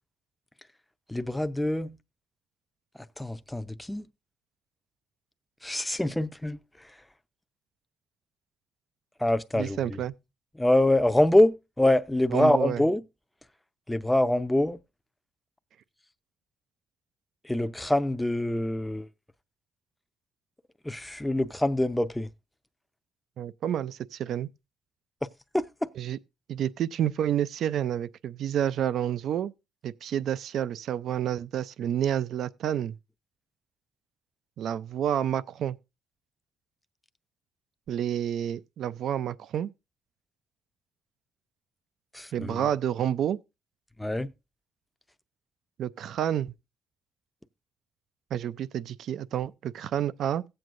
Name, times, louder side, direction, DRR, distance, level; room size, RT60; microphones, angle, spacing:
voice 1, 1.1-2.0 3.2-4.0 5.6-6.6 9.2-10.0 10.6-13.0 13.9-14.8 17.4-19.1 20.8-22.3 25.5-25.9 42.1-42.7 44.0-44.3, left 1 dB, 5° left, 0.6 m, -25 dB
voice 2, 9.6-10.1 12.3-12.8 23.4-24.5 26.0-26.2 26.5-29.5 29.8-33.0 34.6-35.8 37.9-39.7 42.3-43.4 45.8-46.5 48.3-50.4, right 10 dB, 70° right, 0.4 m, -29 dB
16.5 x 7.8 x 2.5 m
cardioid pair, 90°, 0 cm